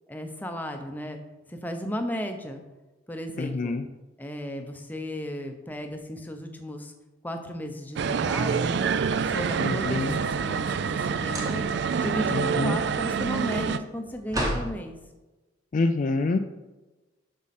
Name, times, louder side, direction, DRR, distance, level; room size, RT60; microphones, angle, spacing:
voice 1, 0.1-1.2 1.5-2.6 3.1-3.8 4.2-6.9 7.2-8.9 9.2-11.6 11.9-15.0, equal, 10° left, 5 dB, 0.7 m, -35 dB
voice 2, 3.4-3.8 9.6-10.2 12.3-12.8 15.7-16.4, left 3 dB, 40° left, 7 dB, 0.3 m, -26 dB
sound 1, 8.0-13.8, right 6 dB, 60° right, 0.3 m, -27 dB
sound 2, 9.2-10.0 11.2-11.9 12.2-14.7, right 1 dB, 20° right, 1.2 m, -34 dB
7.2 x 6.3 x 4.2 m, 1.1 s
head